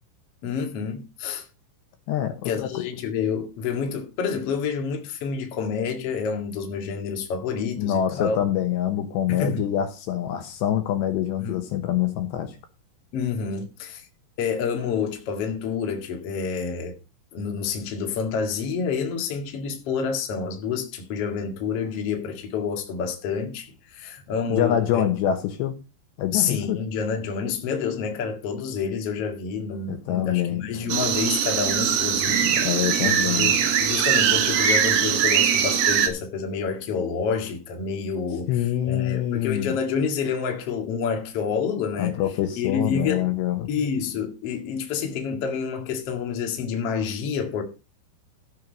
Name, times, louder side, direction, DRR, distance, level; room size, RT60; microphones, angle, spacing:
voice 1, 0.4-1.4 2.4-8.5 9.3-9.7 11.4-11.6 13.1-14.0 14.4-16.9 17.3-25.0 26.3-32.6 33.0-42.2 42.6-43.3 43.7-47.6, left 6 dB, 50° left, 1.9 m, -28 dB
voice 2, 2.1-2.7 7.8-12.6 24.5-25.7 26.2-26.8 29.9-30.7 32.3-33.6 38.5-39.8 42.0-43.7, left 11 dB, 70° left, 3.0 m, -25 dB
sound 1, 30.9-36.1, right 8 dB, 80° right, 4.3 m, -21 dB
14.0 x 6.5 x 5.2 m
omnidirectional pair, 5.7 m